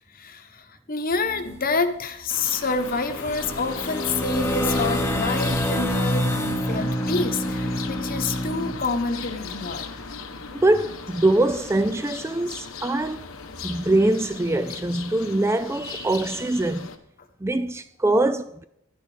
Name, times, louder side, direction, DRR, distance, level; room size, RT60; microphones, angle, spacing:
voice 1, 0.1-9.9, left 3 dB, 40° left, 1.1 m, -28 dB
sound 1, 1.1-1.8 2.4-2.5 2.8-8.7, equal, 10° left, 0.9 m, -27 dB
sound 2, 2.3-17.0, left 5 dB, 70° left, 1.1 m, -37 dB
voice 2, 10.5-13.3 13.6-16.9 17.4-18.6, right 2 dB, 10° right, 0.3 m, -23 dB
12.0 x 10.0 x 5.0 m
head